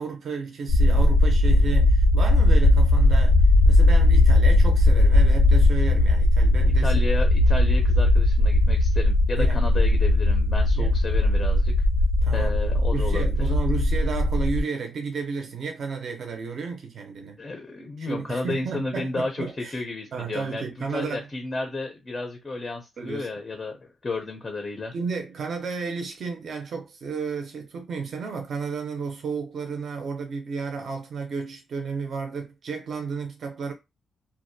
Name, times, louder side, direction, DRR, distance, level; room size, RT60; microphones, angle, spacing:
voice 1, 0.0-7.0 9.4-9.6 10.7-10.9 12.2-12.5 12.9-17.4 18.0-19.7 20.1-21.3 23.0-23.3 24.9-33.7, right 5 dB, 50° right, 0.5 m, -32 dB
sound 1, 0.7-14.6, left 1 dB, 80° left, 0.5 m, -18 dB
voice 2, 6.6-11.7 12.3-13.4 17.4-24.9, left 2 dB, 20° left, 0.4 m, -32 dB
2.5 x 2.1 x 2.6 m
wide cardioid pair, 175°, 0 cm